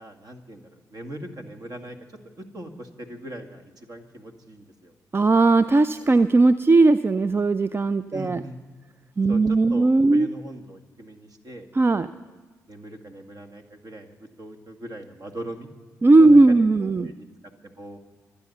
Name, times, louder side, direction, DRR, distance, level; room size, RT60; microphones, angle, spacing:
voice 1, 0.0-2.0 2.4-4.9 8.1-8.6 9.3-11.7 12.1-12.4 12.7-15.7 16.2-17.3 17.6-18.0, right 1 dB, 50° right, 5 dB, 2.0 m, -40 dB
voice 2, 5.1-8.4 9.2-10.3 11.8-12.1 16.0-17.1, right 3 dB, 30° right, 13 dB, 0.5 m, -17 dB
25.0 x 9.0 x 5.5 m, 1.4 s
hypercardioid pair, 40°, 8 cm